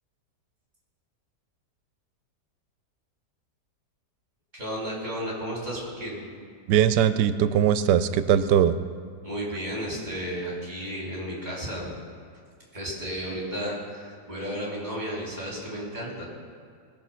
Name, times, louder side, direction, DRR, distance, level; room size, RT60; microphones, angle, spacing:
voice 1, 4.5-6.2 9.2-11.9 12.7-16.3, equal, 25° right, -5 dB, 3.8 m, -33 dB
voice 2, 6.7-8.7, right 9 dB, 90° right, 12 dB, 1.2 m, -20 dB
20.0 x 7.4 x 5.7 m, 2.2 s
omnidirectional pair, 1.8 m